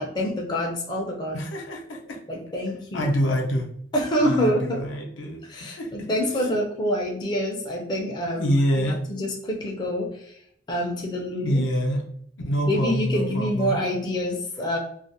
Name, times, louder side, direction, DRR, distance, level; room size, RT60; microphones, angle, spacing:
voice 1, 0.0-1.4 2.3-3.1 3.9-4.8 5.4-8.5 8.8-10.3 10.7-11.6 12.7-14.8, equal, 20° left, -1 dB, 0.4 m, -26 dB
voice 2, 1.3-2.2 2.9-3.7 4.2-6.1 8.3-9.0 11.4-12.1 12.5-13.8, equal, 85° left, 1 dB, 0.6 m, -26 dB
2.4 x 2.0 x 2.6 m, 0.67 s
head